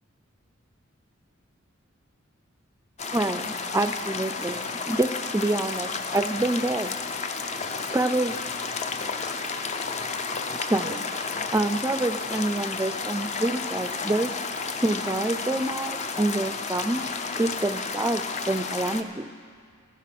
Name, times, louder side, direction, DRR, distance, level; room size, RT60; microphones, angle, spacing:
sound 1, 3.0-19.0, left 4 dB, 35° left, 0.6 m, -32 dB
voice 1, 3.1-7.0 7.9-8.4 10.6-11.0 11.5-14.3 14.8-17.0 17.4-19.3, right 2 dB, 15° right, 10 dB, 0.4 m, -27 dB
14.0 x 10.5 x 5.9 m, 2.2 s
head